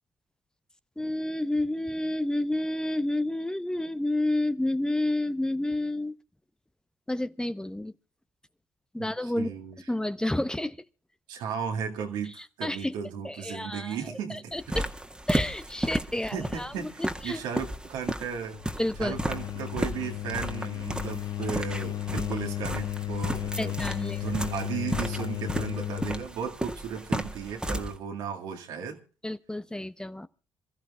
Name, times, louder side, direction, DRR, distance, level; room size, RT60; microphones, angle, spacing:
voice 1, 1.0-6.1 7.1-7.9 8.9-9.5 9.9-10.8 12.6-12.9 13.2-14.0 14.3-14.9 15.3-17.4 18.8-19.2 23.6-24.4 29.2-30.3, left 1 dB, 10° left, 0.9 m, -30 dB
voice 2, 9.0-9.8 11.3-14.8 16.3-18.7 19.0-29.0, right 7 dB, 75° right, 2.1 m, -35 dB
sound 1, 14.5-27.9, right 1 dB, 10° right, 1.9 m, -34 dB
sound 2, 18.5-26.3, left 13 dB, 60° left, 0.8 m, -34 dB
27.0 x 14.0 x 2.4 m
hypercardioid pair, 40°, 8 cm